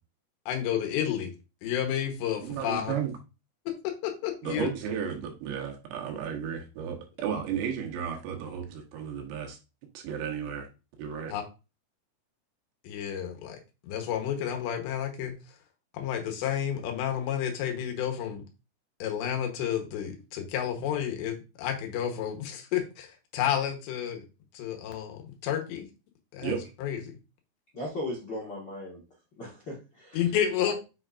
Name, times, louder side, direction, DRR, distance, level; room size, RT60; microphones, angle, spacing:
voice 1, 0.5-1.3 1.6-2.9 3.7-4.7 11.3-11.4 12.8-13.6 13.8-15.3 15.9-18.4 19.0-23.1 23.3-24.3 24.5-25.9 26.3-27.2 30.1-30.7, left 9 dB, 90° left, 3 dB, 3.4 m, -31 dB
voice 2, 2.4-3.1 4.4-9.6 9.9-10.7 11.0-11.3 26.4-26.6, right 7 dB, 80° right, 3 dB, 3.4 m, -33 dB
voice 3, 27.7-29.0 29.4-30.3 30.6-30.7, left 1 dB, 65° left, -4 dB, 1.0 m, -37 dB
7.7 x 5.7 x 2.5 m, 0.29 s
omnidirectional pair, 4.9 m